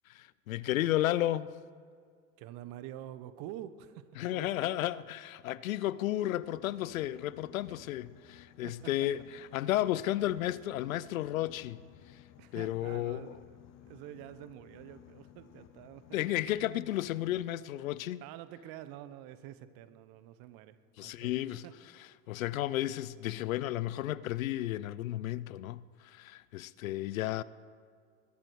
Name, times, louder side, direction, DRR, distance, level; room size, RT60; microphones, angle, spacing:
voice 1, 0.1-1.5 4.2-11.8 12.1-12.2 12.5-13.4 16.1-18.2 21.0-21.6 22.3-27.4, left 14 dB, 75° left, 0.6 m, -33 dB
voice 2, 2.4-4.9 8.6-8.7 12.4-13.6 13.9-16.0 18.2-20.8 21.0-21.7, right 12 dB, 55° right, 1.1 m, -47 dB
Boat Water vehicle, 6.4-17.4, left 12 dB, 55° left, 1.0 m, -57 dB
21.5 x 11.5 x 4.7 m
figure-of-eight pair, 65°, 41 cm